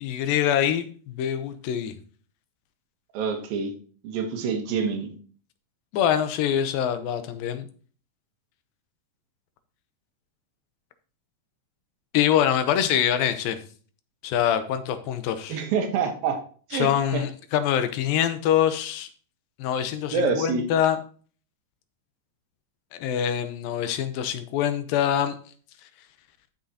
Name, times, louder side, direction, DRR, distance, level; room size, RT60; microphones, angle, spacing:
voice 1, 0.0-2.0 5.9-7.7 12.1-13.6 14.2-15.6 16.7-19.1 19.6-21.0 22.9-25.4, left 10 dB, 90° left, 10 dB, 2.6 m, -24 dB
voice 2, 3.1-3.7 4.0-5.1 15.5-16.4 16.7-17.2 20.1-20.6, right 5 dB, 90° right, 4 dB, 3.0 m, -26 dB
13.0 x 6.4 x 2.8 m, 0.43 s
omnidirectional pair, 4.0 m